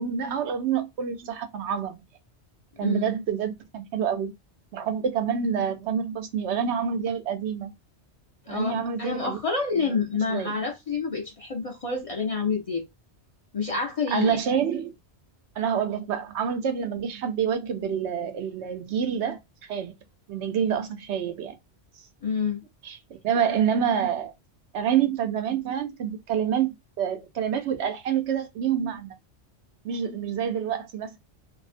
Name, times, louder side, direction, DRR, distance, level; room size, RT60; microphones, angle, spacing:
voice 1, 0.0-2.0 2.8-4.3 4.7-7.7 8.5-9.4 9.8-10.0 10.3-10.5 14.1-14.9 15.6-19.9 20.3-21.5 22.8-23.0 23.2-24.3 24.7-26.7 27.0-29.1 29.8-31.2, right 8 dB, 85° right, 0.9 m, -27 dB
voice 2, 8.5-12.8 13.5-14.4 22.2-22.6, left 4 dB, 45° left, 0.4 m, -28 dB
2.5 x 2.0 x 2.5 m
omnidirectional pair, 1.1 m